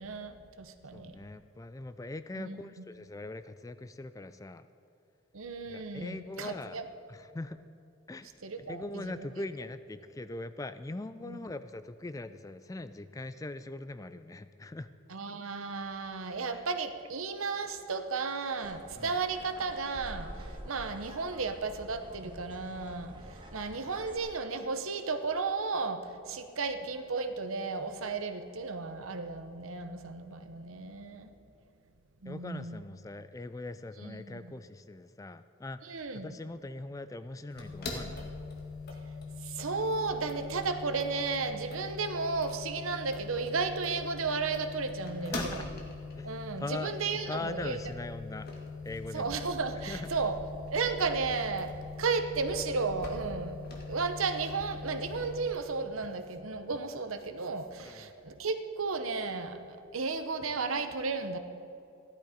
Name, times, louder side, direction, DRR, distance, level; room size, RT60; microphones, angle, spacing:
voice 1, 0.0-1.1 2.4-2.7 5.3-6.8 8.4-9.3 11.2-11.4 15.1-23.1 23.5-31.3 32.2-32.8 34.0-34.4 35.8-36.3 39.4-45.6 46.2-47.8 49.1-50.3 50.7-51.7 52.0-53.6 53.9-59.6 59.9-61.4, right 4 dB, 80° right, 8 dB, 0.9 m, -34 dB
voice 2, 0.9-4.7 5.7-6.8 7.1-7.6 8.1-14.9 16.5-16.6 18.9-19.1 23.2-23.4 32.3-38.3 45.3-45.7 46.1-47.0 47.3-48.5 48.8-49.4 49.9-50.1 57.8-58.1, left 2 dB, 15° left, 12 dB, 0.3 m, -41 dB
sound 1, 18.6-24.2, right 1 dB, 25° right, 1.4 m, -47 dB
sound 2, 37.5-55.5, left 3 dB, 45° left, 1.8 m, -42 dB
14.0 x 12.0 x 5.1 m, 2.7 s
head